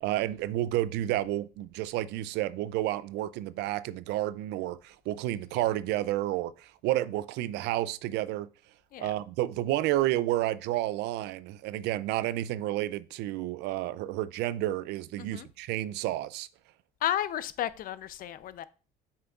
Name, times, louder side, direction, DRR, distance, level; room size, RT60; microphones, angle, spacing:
voice 1, 0.0-8.5 9.0-16.5, right 15 dB, 85° right, 0.4 m, -30 dB
voice 2, 17.0-18.6, left 11 dB, 60° left, 0.5 m, -32 dB
7.7 x 5.7 x 2.4 m
cardioid pair, 110°, 17 cm